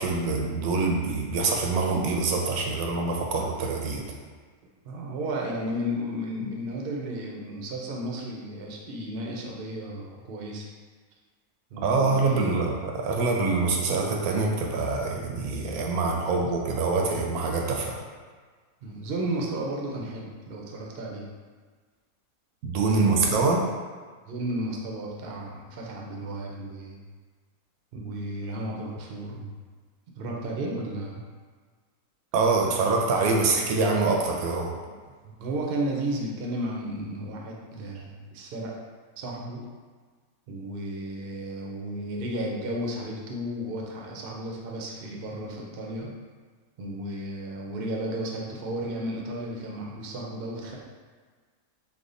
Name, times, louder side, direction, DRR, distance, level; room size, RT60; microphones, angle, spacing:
voice 1, 0.0-4.0 11.8-18.0 22.6-23.7 32.3-34.7, right 3 dB, 80° right, 0 dB, 1.1 m, -25 dB
voice 2, 4.8-10.7 11.7-12.6 16.3-16.4 18.8-21.3 23.0-23.6 24.3-27.0 27.9-29.5 30.2-31.2 35.2-38.7 39.2-39.6 40.5-46.1 46.8-50.8, right 1 dB, 60° right, -2 dB, 0.6 m, -33 dB
3.4 x 2.1 x 3.7 m, 1.5 s
omnidirectional pair, 1.6 m